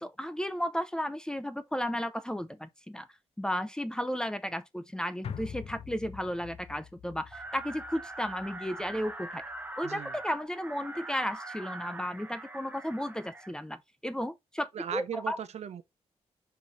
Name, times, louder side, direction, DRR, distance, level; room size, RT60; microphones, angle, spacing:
voice 1, 0.0-3.1 3.4-9.4 9.8-15.4, equal, 5° left, 0.5 m, -34 dB
sound 1, 5.2-9.7 10.0-10.1, left 7 dB, 60° left, 0.7 m, -45 dB
sound 2, 7.3-13.5, right 2 dB, 15° right, 0.9 m, -43 dB
voice 2, 9.8-10.1 14.7-15.8, right 8 dB, 70° right, 0.8 m, -37 dB
5.4 x 4.7 x 3.9 m
wide cardioid pair, 135°, 11 cm